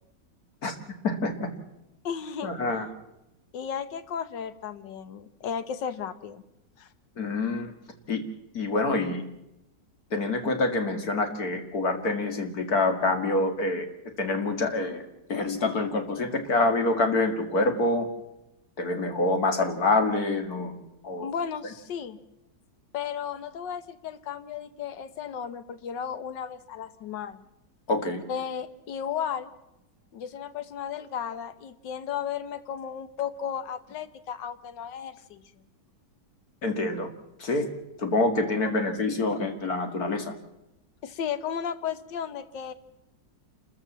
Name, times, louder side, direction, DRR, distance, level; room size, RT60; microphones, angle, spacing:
voice 1, 1.0-1.5 2.4-2.9 7.2-7.7 8.1-8.2 8.5-9.2 10.1-13.9 14.2-15.0 15.3-18.1 18.8-20.8 21.0-21.3 27.9-28.2 36.6-37.1 37.4-37.7 38.0-40.4, left 2 dB, 55° left, 6 dB, 2.6 m, -26 dB
voice 2, 2.0-2.5 3.5-6.4 6.8-6.9 21.2-22.2 22.9-27.4 28.3-29.5 30.1-35.5 38.7-39.1 41.0-42.7, left 8 dB, 80° left, 12 dB, 1.7 m, -34 dB
28.5 x 14.0 x 7.4 m, 0.90 s
omnidirectional pair, 1.9 m